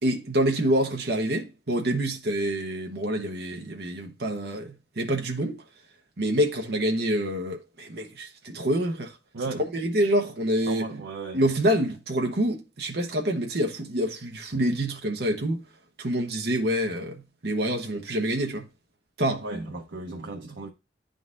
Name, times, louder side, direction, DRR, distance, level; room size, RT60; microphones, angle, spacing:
voice 1, 0.0-5.6 6.2-9.1 9.7-10.9 11.3-15.6 16.0-18.6 19.2-19.4, right 1 dB, 60° right, 1.0 m, -27 dB
voice 2, 9.3-9.7 10.7-11.5 19.4-20.7, right 3 dB, 85° right, 0.8 m, -35 dB
10.5 x 3.9 x 2.5 m
head